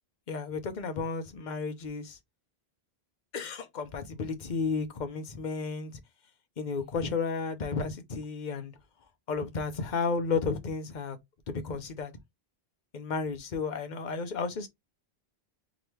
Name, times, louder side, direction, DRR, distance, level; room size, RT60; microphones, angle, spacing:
voice 1, 0.3-2.2 3.3-6.0 6.6-8.7 9.3-11.2 11.5-12.1 12.9-14.7, left 4 dB, 50° left, 0.9 m, -33 dB
3.8 x 2.9 x 3.2 m
omnidirectional pair, 1.0 m